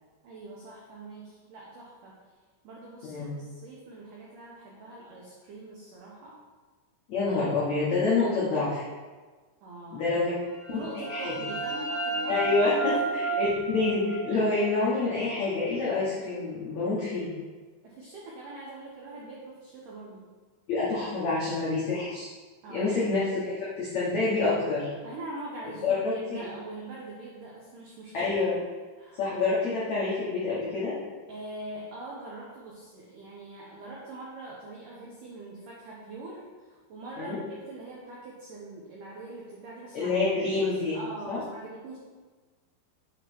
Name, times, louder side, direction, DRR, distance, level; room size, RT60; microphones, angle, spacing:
voice 1, 0.2-2.2 2.6-6.4 9.6-10.3 10.7-12.6 12.9-13.0 13.3-13.4 17.8-20.2 22.6-23.0 25.0-28.3 29.0-29.2 31.3-40.1 40.4-42.0, right 2 dB, 85° right, -4 dB, 1.8 m, -43 dB
voice 2, 7.1-8.8 9.9-10.3 10.7-10.8 11.1-11.3 12.3-12.9 13.4-13.5 13.7-17.3 20.7-22.3 22.7-24.9 25.8-26.4 28.1-28.6 29.1-30.9 37.2-37.4 39.9-41.0 41.3-41.4, left 3 dB, 80° left, -7 dB, 1.6 m, -27 dB
sound 1, 10.4-15.9, right 4 dB, 55° left, 2.7 m, -33 dB
8.6 x 4.5 x 4.4 m, 1.4 s
omnidirectional pair, 5.3 m